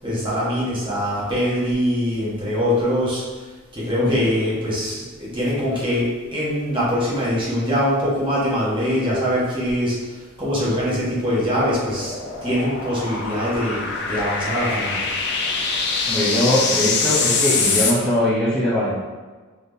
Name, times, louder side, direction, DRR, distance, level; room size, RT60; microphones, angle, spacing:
voice 1, 0.0-3.2 3.7-10.0 10.4-12.1 12.4-15.1, equal, 25° right, -8 dB, 1.2 m, -23 dB
White Noise Sweep, 10.4-17.9, left 4 dB, 50° left, 0.5 m, -24 dB
voice 2, 16.1-19.0, left 1 dB, 5° left, -11 dB, 0.7 m, -21 dB
4.1 x 3.4 x 2.6 m, 1.4 s
head